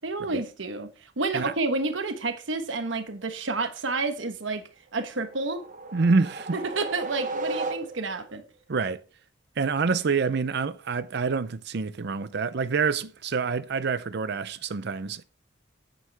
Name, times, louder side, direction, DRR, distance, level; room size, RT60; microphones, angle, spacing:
voice 1, 0.0-5.6 6.5-8.4, right 3 dB, 90° right, 1.2 m, -30 dB
sound 1, 5.0-8.3, right 3 dB, 45° right, 1.1 m, -35 dB
voice 2, 5.9-6.6 8.7-9.0 9.6-15.2, right 4 dB, 60° right, 0.6 m, -27 dB
9.3 x 9.3 x 3.4 m
head